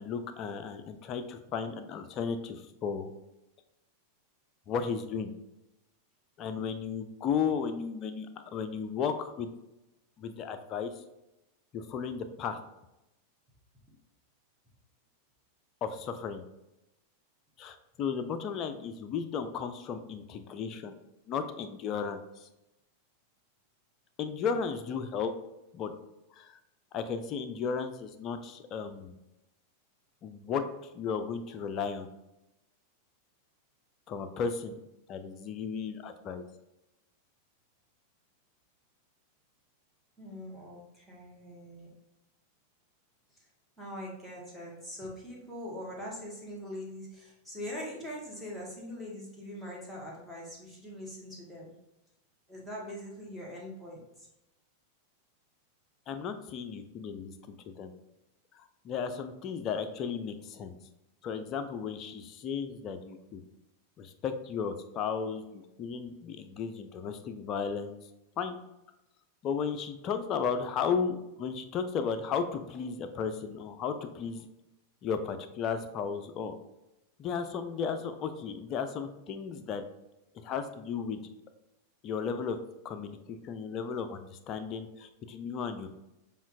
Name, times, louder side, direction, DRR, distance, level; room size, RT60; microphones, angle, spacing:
voice 1, 0.0-3.1 4.7-5.3 6.4-9.5 10.2-10.9 11.7-12.6 15.8-16.4 17.6-20.9 21.3-22.5 24.2-25.3 25.7-25.9 26.3-26.6 26.9-29.1 30.2-30.6 30.9-32.1 34.1-34.8 35.1-36.4 56.1-57.9 58.6-60.8 61.2-63.4 64.0-68.0 68.4-68.6 69.4-74.5 75.0-76.5 77.2-79.8 80.4-81.2 82.0-82.6 82.8-85.9, left 6 dB, 35° left, 9 dB, 0.4 m, -34 dB
voice 2, 40.2-41.9 43.3-43.5 43.8-51.7 52.5-54.3, left 1 dB, ahead, -5 dB, 1.3 m, -42 dB
6.9 x 2.3 x 2.4 m, 0.93 s
figure-of-eight pair, 90°, 0 cm